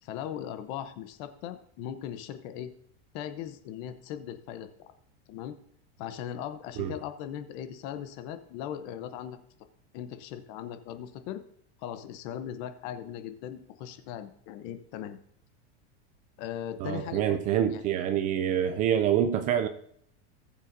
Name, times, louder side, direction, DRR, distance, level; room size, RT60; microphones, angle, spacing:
voice 1, 0.0-2.7 3.1-4.9 5.3-5.6 6.0-9.4 9.9-11.4 11.8-15.2 16.4-17.8, left 10 dB, 45° left, 10 dB, 0.9 m, -39 dB
voice 2, 16.8-19.7, right 10 dB, 25° right, 10 dB, 0.4 m, -26 dB
19.0 x 7.2 x 2.7 m, 0.66 s
supercardioid pair, 165°, 33 cm